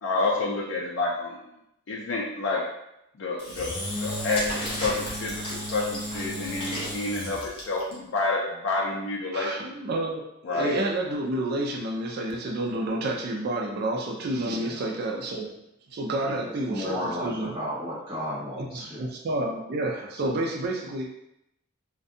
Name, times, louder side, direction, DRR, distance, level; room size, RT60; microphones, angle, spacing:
voice 1, 0.0-1.4 1.9-2.6 3.2-9.7 10.5-10.7, left 3 dB, 65° left, -3 dB, 0.4 m, -29 dB
Engine / Drill, 3.4-7.9, equal, 25° left, 0.6 m, -33 dB
voice 2, 9.3-15.5 15.9-17.5 18.6-21.2, right 1 dB, 50° right, 1 dB, 0.4 m, -30 dB
voice 3, 14.4-14.9 16.3-19.0, equal, 25° right, -10 dB, 1.3 m, -34 dB
2.5 x 2.2 x 2.5 m, 0.82 s
head